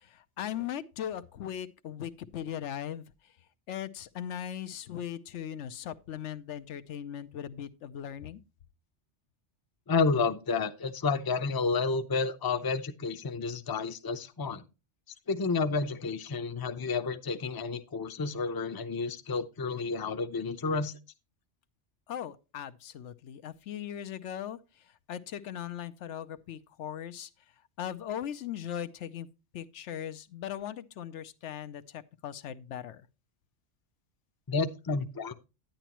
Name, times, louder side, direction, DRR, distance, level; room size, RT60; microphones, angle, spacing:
voice 1, 0.0-3.3 3.7-8.4 22.1-27.3 27.8-29.3 29.5-33.0, left 10 dB, 80° left, 1.0 m, -39 dB
voice 2, 9.9-14.6 15.3-20.9 34.5-35.3, left 4 dB, 25° left, 0.5 m, -30 dB
10.5 x 10.0 x 3.0 m
omnidirectional pair, 1.2 m